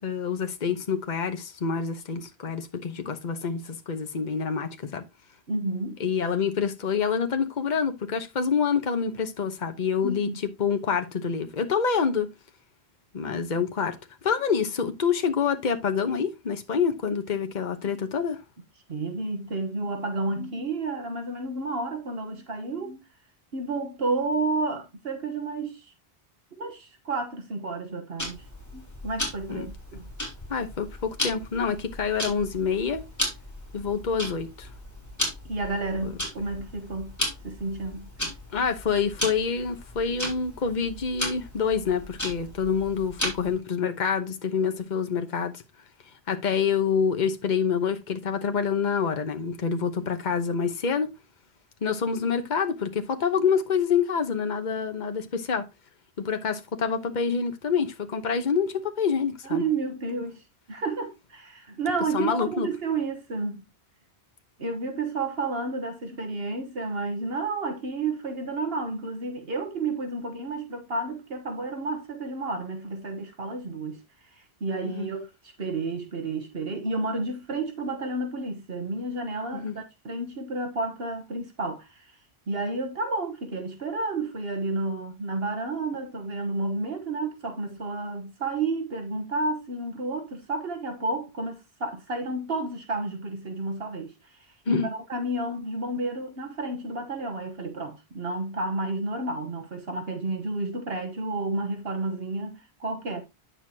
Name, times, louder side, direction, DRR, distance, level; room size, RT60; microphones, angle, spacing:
voice 1, 0.0-5.0 6.0-10.3 10.6-12.3 13.1-14.0 14.2-18.4 29.5-29.7 30.5-33.0 33.7-34.7 38.5-45.6 46.3-51.1 51.8-55.7 56.2-59.6 62.1-62.7 74.8-75.1 79.5-79.7 94.7-94.9, left 6 dB, 45° left, 1.1 m, -27 dB
voice 2, 5.5-6.0 10.0-10.4 18.9-23.0 23.5-25.9 26.6-28.4 28.7-30.1 35.4-37.2 37.4-38.1 59.4-63.6 64.6-74.0 74.3-82.2 82.5-103.2, right 3 dB, 70° right, 1.5 m, -31 dB
Tick-tock, 28.2-43.6, left 1 dB, 15° left, 3.7 m, -35 dB
9.4 x 6.8 x 2.8 m
omnidirectional pair, 1.1 m